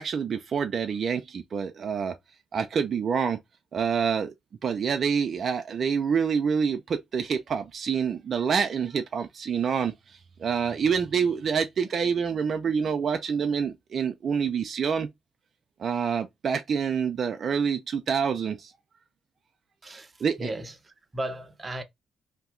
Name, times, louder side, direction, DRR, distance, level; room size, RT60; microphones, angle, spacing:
voice 1, 0.0-2.2 2.5-3.4 3.7-4.3 4.6-15.1 15.8-18.7 20.2-20.5, right 6 dB, 50° right, 0.4 m, -27 dB
voice 2, 19.8-21.8, right 1 dB, 25° right, 0.7 m, -36 dB
2.7 x 2.2 x 3.6 m
cardioid pair, 90°, 0 cm